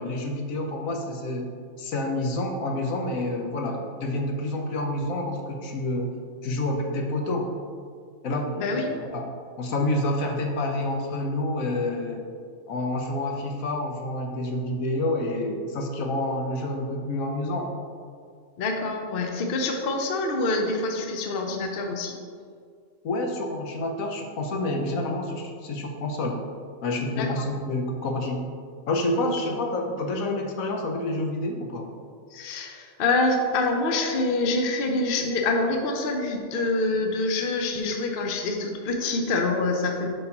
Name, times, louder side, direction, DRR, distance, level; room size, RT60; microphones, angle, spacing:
voice 1, 0.0-1.5 1.8-6.1 6.4-7.5 8.2-9.3 9.6-12.2 12.7-17.7 23.0-26.4 26.8-28.5 28.9-31.9, left 1 dB, 75° left, 2 dB, 1.1 m, -28 dB
voice 2, 8.6-8.9 18.6-22.2 27.1-27.4 29.2-29.3 32.3-40.1, left 2 dB, 50° left, 3 dB, 0.8 m, -26 dB
7.8 x 5.5 x 2.9 m, 2.1 s
omnidirectional pair, 1.5 m